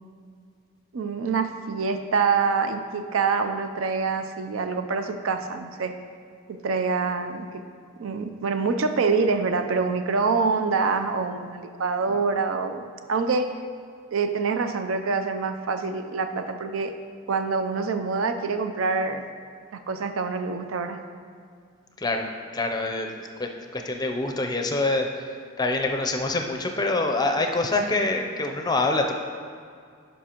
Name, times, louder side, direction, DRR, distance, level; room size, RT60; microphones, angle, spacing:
voice 1, 0.9-6.0 6.5-7.6 8.0-12.8 13.1-13.5 14.1-16.9 17.3-19.2 19.7-21.0, right 4 dB, 85° right, 7 dB, 0.5 m, -26 dB
voice 2, 22.5-29.1, left 2 dB, 20° left, 4 dB, 0.5 m, -26 dB
11.0 x 5.4 x 2.9 m, 2.2 s
head